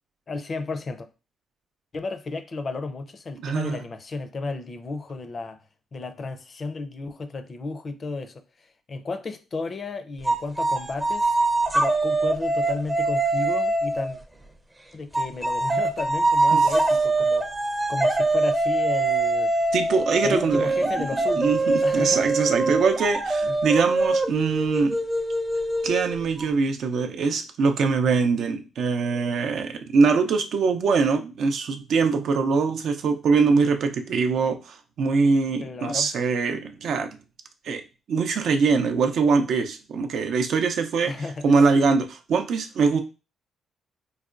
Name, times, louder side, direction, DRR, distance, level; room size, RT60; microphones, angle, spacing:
voice 1, 0.3-1.1 1.9-5.6 5.9-11.4 11.7-14.2 14.9-17.5 17.9-19.7 20.2-22.2 23.4-23.6 35.6-36.1 41.1-42.0, left 3 dB, 40° left, 0.5 m, -33 dB
voice 2, 3.4-3.8 16.5-16.6 19.7-20.7 21.4-25.0 25.8-37.2 37.6-37.8 38.1-41.1 41.4-43.0, right 4 dB, 65° right, 0.4 m, -23 dB
sound 1, 10.3-14.2 15.1-26.5, right 2 dB, 15° right, 0.5 m, -23 dB
4.6 x 2.2 x 2.5 m
cardioid pair, 90°, 0 cm